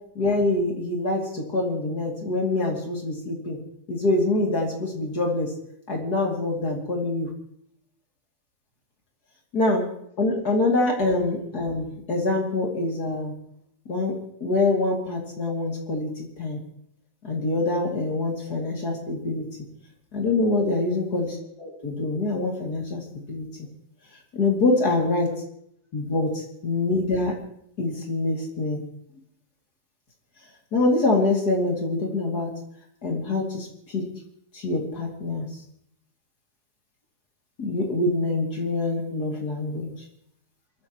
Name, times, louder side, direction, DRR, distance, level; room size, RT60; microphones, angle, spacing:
voice 1, 0.1-3.6 3.9-5.5 5.9-7.3 9.5-9.9 10.2-13.3 13.9-16.6 17.2-19.5 20.1-23.0 23.3-23.5 24.3-25.3 25.9-27.3 27.8-28.8 30.7-32.5 33.0-34.0 34.5-35.5 37.6-39.9, left 2 dB, 30° left, -1 dB, 2.4 m, -25 dB
27.5 x 14.0 x 3.1 m, 0.72 s
omnidirectional pair, 4.7 m